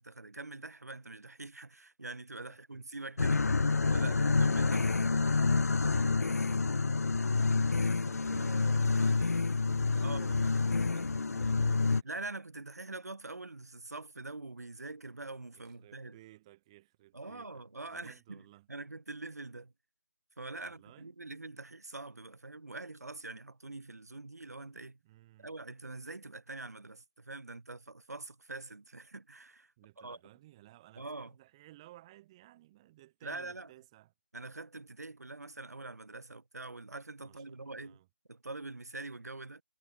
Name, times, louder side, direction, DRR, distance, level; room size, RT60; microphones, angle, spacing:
voice 1, 0.0-3.7 3.9-5.2 9.9-10.2 12.0-16.2 17.1-18.4 18.7-19.7 20.4-25.0 25.4-30.2 31.0-31.3 33.2-33.7 34.3-38.0 38.3-39.6, right 2 dB, 90° right, 3.8 m, -44 dB
sound 1, 3.2-12.0, left 4 dB, 80° left, 0.8 m, -28 dB
voice 2, 5.8-6.1 8.1-12.1 15.5-18.7 20.6-21.1 25.0-25.5 29.8-34.1 37.2-38.1, right 16 dB, 20° right, 3.7 m, -57 dB
figure-of-eight pair, 165°, 8 cm